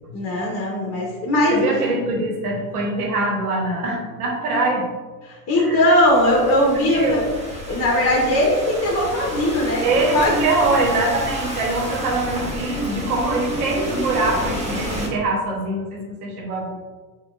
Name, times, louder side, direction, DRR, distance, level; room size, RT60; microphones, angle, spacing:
voice 1, 0.1-1.7 5.3-7.2 7.7-10.4, left 1 dB, 35° left, -2 dB, 1.0 m, -19 dB
voice 2, 1.5-4.8 5.6-5.9 6.9-7.2 9.8-16.7, right 2 dB, 75° right, -1 dB, 1.1 m, -23 dB
Thunderstorm / Rain, 6.0-15.1, equal, 15° right, 1.3 m, -31 dB
6.5 x 2.4 x 2.5 m, 1.3 s
figure-of-eight pair, 65°, 45 cm